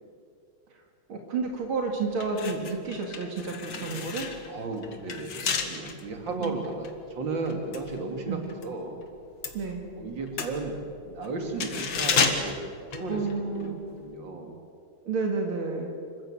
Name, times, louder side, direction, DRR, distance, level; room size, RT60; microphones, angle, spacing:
voice 1, 1.1-4.3 6.4-6.6 8.3-8.4 9.5-9.9 13.1-13.8 15.0-15.9, right 4 dB, 80° right, 2 dB, 2.9 m, -30 dB
sound 1, 1.5-1.7 2.1-8.7 9.0-13.7 14.0-14.1, left 5 dB, 65° left, 2.3 m, -32 dB
voice 2, 4.5-8.9 10.0-10.8 11.0-12.6 12.9-14.5, right 3 dB, 60° right, 3 dB, 3.1 m, -34 dB
26.5 x 15.0 x 8.8 m, 2.4 s
omnidirectional pair, 2.3 m